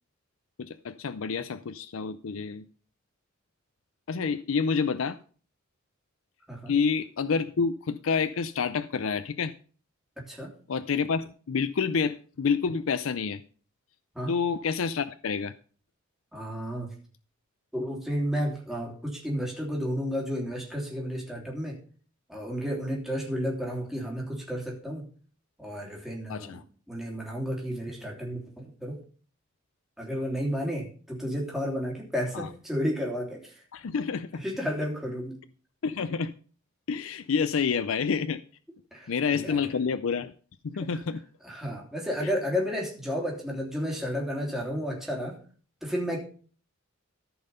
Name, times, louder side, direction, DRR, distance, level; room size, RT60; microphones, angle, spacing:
voice 1, 0.6-2.7 4.1-5.2 6.7-9.5 10.7-13.4 14.3-15.5 26.3-26.6 32.3-32.5 33.7-34.4 35.8-36.3 36.9-38.4 39.1-40.3 40.6-41.2 42.2-42.3, left 5 dB, 80° left, 0.5 m, -28 dB
voice 2, 16.3-16.9 17.7-21.8 22.3-25.1 25.6-26.6 26.9-29.0 30.0-33.6 34.3-35.3 38.9-39.7 40.8-41.0 41.4-45.4 45.8-46.2, equal, ahead, 3.1 m, -32 dB
14.0 x 5.5 x 5.5 m
head